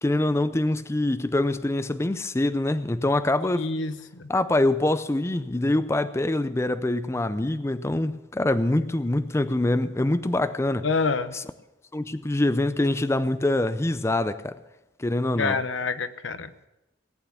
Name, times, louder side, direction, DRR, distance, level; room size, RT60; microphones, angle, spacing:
voice 1, 0.0-3.6 4.3-10.9 11.3-11.4 11.9-14.6 15.0-15.6, left 1 dB, 15° left, 0.4 m, -24 dB
voice 2, 3.5-4.3 10.8-11.3 15.4-16.5, left 4 dB, 85° left, 0.9 m, -27 dB
18.0 x 8.4 x 7.0 m
head